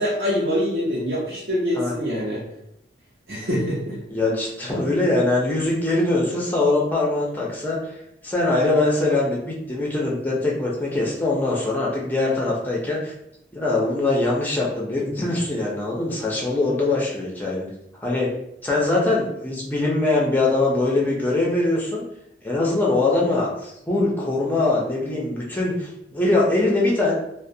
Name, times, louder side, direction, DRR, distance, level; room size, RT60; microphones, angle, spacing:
voice 1, 0.0-2.4 3.3-4.0, equal, 55° right, -7 dB, 0.6 m, -24 dB
voice 2, 4.1-8.0 8.2-13.1 13.5-17.7 18.0-18.3 18.6-22.0 22.4-27.1, left 2 dB, 10° left, -3 dB, 0.5 m, -22 dB
2.3 x 2.0 x 2.6 m, 0.78 s
head